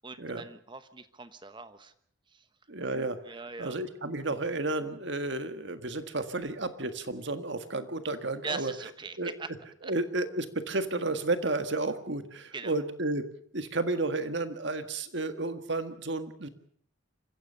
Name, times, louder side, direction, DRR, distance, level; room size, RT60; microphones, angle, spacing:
voice 1, 0.0-1.9 2.3-2.5 3.2-3.8 8.4-9.5 9.8-9.9 12.5-12.7, right 4 dB, 25° right, 12 dB, 1.0 m, -41 dB
voice 2, 2.7-3.2 3.6-8.7 9.2-9.3 9.8-13.3 13.5-16.5, right 2 dB, 60° right, 9 dB, 1.7 m, -32 dB
26.5 x 15.5 x 6.8 m, 0.63 s
head